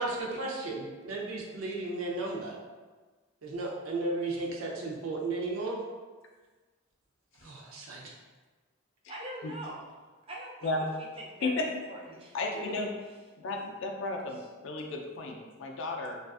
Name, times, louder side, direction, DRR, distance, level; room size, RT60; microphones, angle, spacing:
voice 1, 0.0-2.5 3.4-5.8 7.4-8.1, right 2 dB, 80° right, -2 dB, 0.5 m, -34 dB
voice 2, 9.1-9.8 10.3-11.5 11.9-13.1 14.4-14.5, right 1 dB, 25° right, -2 dB, 0.3 m, -43 dB
voice 3, 12.3-12.9 13.4-14.4 14.6-16.2, left 2 dB, 65° left, 1 dB, 0.4 m, -33 dB
2.4 x 2.3 x 2.3 m, 1.3 s
head